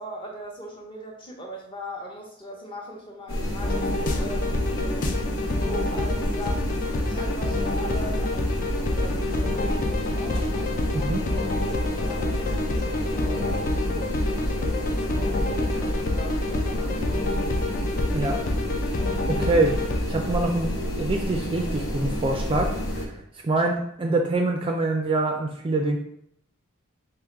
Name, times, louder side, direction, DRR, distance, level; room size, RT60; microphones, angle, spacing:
voice 1, 0.0-5.3 5.6-6.7 7.1-11.3 11.8-17.1, equal, 25° left, -1 dB, 0.9 m, -40 dB
sound 1, 3.3-23.1, equal, 65° left, 1.0 m, -30 dB
sound 2, 3.6-20.0, left 2 dB, 40° left, 0.4 m, -28 dB
voice 2, 10.9-11.3 18.1-18.4 19.4-19.8 20.1-26.0, right 2 dB, 25° right, 2 dB, 0.4 m, -25 dB
3.8 x 3.0 x 4.6 m, 0.69 s
head